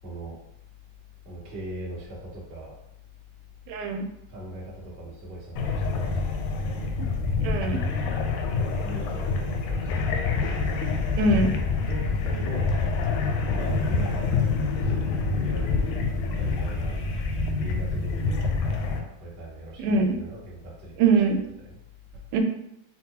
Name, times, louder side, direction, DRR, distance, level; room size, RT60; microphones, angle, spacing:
voice 1, 0.0-0.4 1.2-2.7 4.3-6.7 8.6-10.1 10.4-10.6 11.8-13.1 13.5-15.8 16.4-17.0 17.6-21.0 21.6-21.8 22.1-22.2, right 1 dB, 40° right, -9 dB, 0.8 m, -40 dB
voice 2, 3.7-4.1 7.4-7.8 11.2-11.5 19.8-20.2 21.0-21.4 22.3-22.4, right 3 dB, 85° right, 4 dB, 2.0 m, -22 dB
sound 1, 5.6-19.0, left 4 dB, 80° left, 1.8 m, -26 dB
5.7 x 2.2 x 2.7 m, 0.81 s
omnidirectional pair, 3.6 m